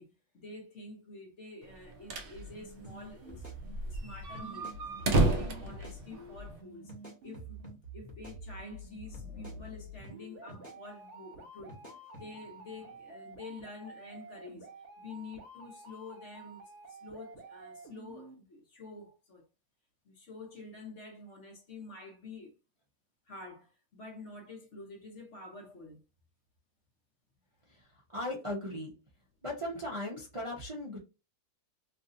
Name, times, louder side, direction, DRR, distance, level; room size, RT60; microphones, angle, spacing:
voice 1, 0.0-3.5 3.8-4.7 5.1-6.9 7.2-7.6 7.9-11.8 12.1-14.7 15.0-19.5 20.0-22.5 23.3-26.0, left 3 dB, 50° left, 1.2 m, -48 dB
sound 1, 1.7-2.4 2.7-2.8 3.0-3.1 3.6-6.6, right 2 dB, 80° right, 0.5 m, -30 dB
sound 2, 2.3-18.4, right 1 dB, 50° right, 1.3 m, -49 dB
sound 3, 2.8-3.0 3.3-4.0 4.3-4.8 5.2-5.4 5.7-6.0 6.9-7.8 8.1-8.8 9.1-9.6 10.0-10.2 10.5-10.8 11.7-12.3, left 1 dB, 15° left, 1.1 m, -51 dB
voice 2, 28.1-28.9 29.4-31.0, left 1 dB, 30° right, 0.6 m, -37 dB
3.2 x 2.6 x 2.6 m
omnidirectional pair, 1.7 m